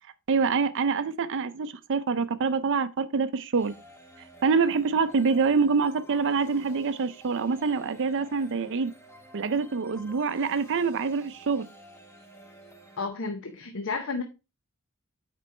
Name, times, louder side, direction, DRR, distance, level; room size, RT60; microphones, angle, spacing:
voice 1, 0.3-3.7 4.4-8.9 9.3-11.7, right 5 dB, 55° right, 0.5 m, -26 dB
sound 1, 3.5-13.1, right 1 dB, 10° left, 1.2 m, -51 dB
voice 2, 13.0-14.2, left 4 dB, 60° left, 0.8 m, -32 dB
8.2 x 5.2 x 3.3 m
head